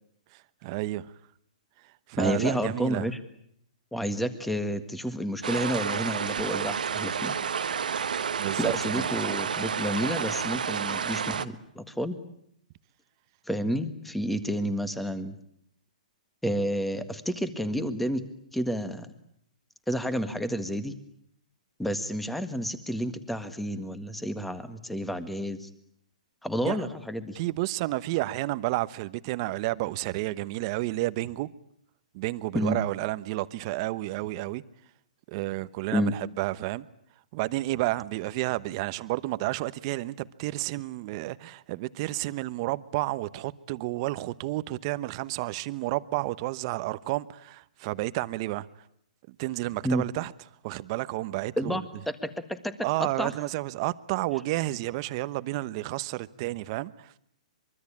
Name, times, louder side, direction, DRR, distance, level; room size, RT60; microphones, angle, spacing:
voice 1, 0.6-1.1 2.1-3.0 8.4-9.1 26.6-26.8 27.3-31.5 32.1-34.6 35.3-36.9 37.3-48.7 49.4-50.3 50.6-51.8 52.8-57.1, right 18 dB, 35° right, 1.0 m, -31 dB
voice 2, 2.2-3.2 3.9-7.3 8.6-12.2 13.5-15.4 16.4-18.2 18.5-19.1 19.9-20.9 21.8-25.7 26.4-27.4 32.5-32.8 35.9-36.1 49.8-50.0 51.6-52.7 53.0-53.3, equal, ahead, 1.7 m, -30 dB
sound 1, 5.4-11.5, right 7 dB, 85° right, 1.4 m, -30 dB
24.5 x 23.5 x 8.7 m
hypercardioid pair, 145°, 4 cm